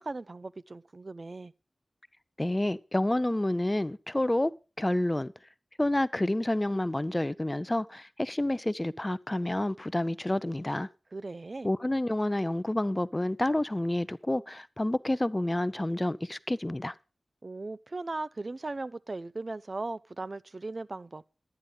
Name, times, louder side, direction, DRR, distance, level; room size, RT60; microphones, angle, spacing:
voice 1, 0.0-1.5 11.1-11.7 17.4-21.3, right 2 dB, 45° right, 0.5 m, -38 dB
voice 2, 2.4-4.5 4.8-5.3 5.8-10.9 11.6-17.0, left 1 dB, 20° left, 0.5 m, -29 dB
12.0 x 9.9 x 5.3 m
wide cardioid pair, 85°, 0 cm